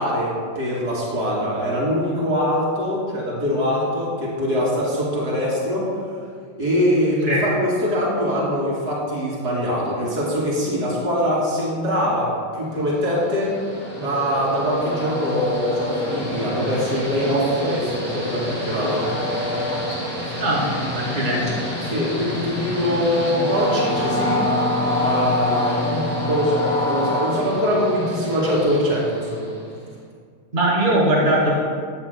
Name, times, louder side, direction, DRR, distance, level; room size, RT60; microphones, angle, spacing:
voice 1, 0.0-5.8 6.1-6.2 6.5-13.5 14.0-19.0 20.5-21.4 21.8-24.4 24.9-29.5, equal, 45° right, -6 dB, 3.3 m, -23 dB
Train, 13.0-29.8, left 1 dB, 5° left, 2.4 m, -26 dB
voice 2, 20.9-21.5 30.5-31.5, right 1 dB, 25° right, -5 dB, 2.3 m, -20 dB
15.0 x 9.9 x 2.2 m, 2.1 s
omnidirectional pair, 2.3 m